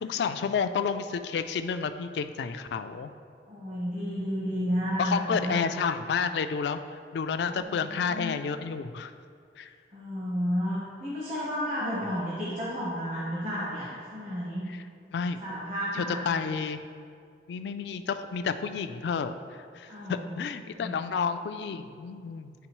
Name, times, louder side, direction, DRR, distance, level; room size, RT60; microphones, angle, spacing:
voice 1, 0.0-3.1 5.0-6.8 7.1-9.1 9.6-9.7 15.1-15.4 15.9-16.8 17.5-19.3 19.7-22.5, left 6 dB, 70° left, 10 dB, 0.3 m, -30 dB
voice 2, 3.5-5.6 7.5-8.4 9.9-14.7 15.4-16.3 19.9-20.3 20.8-20.9, equal, 40° right, -8 dB, 1.1 m, -32 dB
10.0 x 3.5 x 3.0 m, 2.2 s
head